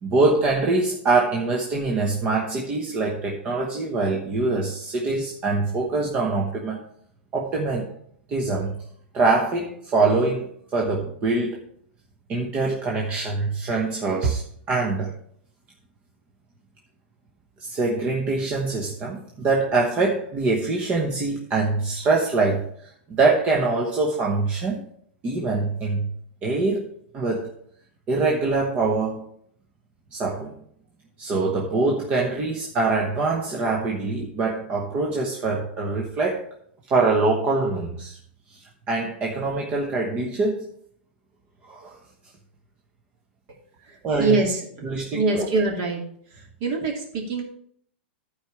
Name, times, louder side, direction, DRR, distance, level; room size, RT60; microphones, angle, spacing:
voice 1, 0.0-6.8 7.3-7.9 8.3-8.8 9.1-11.6 12.3-14.4 14.7-15.1 17.6-24.8 25.2-26.1 26.4-26.9 27.1-27.5 28.1-29.3 30.1-30.5 31.2-36.5 36.9-38.2 38.5-38.6 38.9-40.7 41.6-42.0 44.0-44.4 44.8-45.5, right 3 dB, 25° right, -1 dB, 1.1 m, -24 dB
voice 2, 43.8-44.8 45.1-46.0 46.3-47.4, right 3 dB, 40° right, 1 dB, 2.5 m, -24 dB
11.5 x 4.9 x 4.6 m, 0.65 s
supercardioid pair, 160°, 6 cm